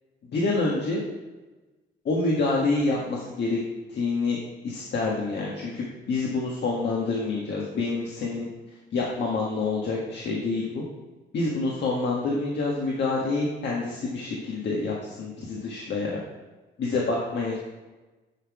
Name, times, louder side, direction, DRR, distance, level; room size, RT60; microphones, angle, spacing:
voice 1, 0.3-1.0 2.0-3.6 3.9-4.4 4.6-8.5 8.9-10.8 11.3-16.2 16.8-17.6, left 3 dB, 60° left, -3 dB, 1.5 m, -27 dB
9.8 x 3.8 x 4.8 m, 1.2 s
cardioid pair, 90°, 20 cm